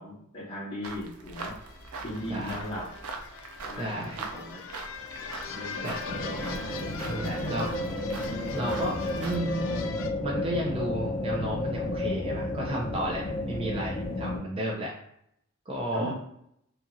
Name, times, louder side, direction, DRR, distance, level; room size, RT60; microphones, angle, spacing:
voice 1, 0.0-1.5 2.0-2.9 3.6-4.6 5.5-6.9 7.2-7.9 15.9-16.1, equal, 25° left, -7 dB, 0.9 m, -38 dB
sound 1, 0.8-9.4, right 3 dB, 80° right, 0.5 m, -42 dB
sound 2, 1.6-10.1, left 5 dB, 65° left, 0.4 m, -41 dB
voice 2, 3.8-4.2 5.8-6.0 7.0-7.7 8.5-8.9 9.2-9.7 10.2-14.9 15.7-16.1, right 1 dB, 25° right, -3 dB, 0.4 m, -32 dB
sound 3, 6.1-14.4, left 1 dB, 80° left, 1.1 m, -32 dB
2.8 x 2.5 x 2.6 m, 0.75 s
head